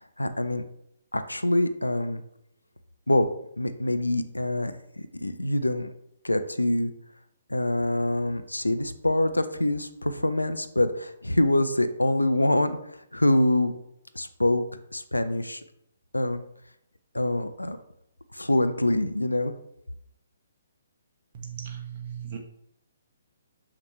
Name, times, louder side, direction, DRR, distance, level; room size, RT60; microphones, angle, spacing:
voice 1, 0.2-0.6 1.1-2.2 3.1-3.3 3.6-4.7 5.1-5.9 6.2-6.9 7.5-12.8 13.1-13.7 14.2-14.6 14.9-15.6 16.1-16.4 17.1-17.8 18.3-19.5, left 1 dB, 80° left, 10 dB, 0.6 m, -25 dB
voice 2, 21.3-22.4, right 8 dB, 35° right, 1 dB, 1.0 m, -37 dB
6.0 x 5.9 x 3.2 m, 0.75 s
figure-of-eight pair, 130°, 0 cm